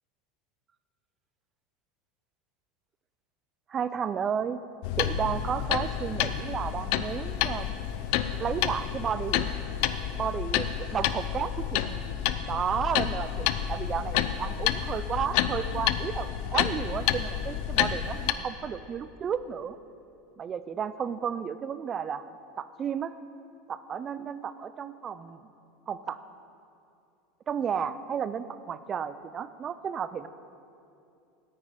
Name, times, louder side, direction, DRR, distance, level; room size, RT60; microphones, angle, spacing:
voice 1, 3.7-4.6 5.0-7.7 8.4-9.5 10.2-12.0 12.5-19.8 20.4-22.3 22.6-23.1 23.7-25.5 25.9-26.2 27.5-30.3, right 7 dB, 20° right, 14 dB, 0.4 m, -32 dB
sound 1, 4.8-18.3, left 11 dB, 50° left, 0.6 m, -29 dB
17.5 x 9.7 x 5.2 m, 2.6 s
supercardioid pair, 180°, 0 cm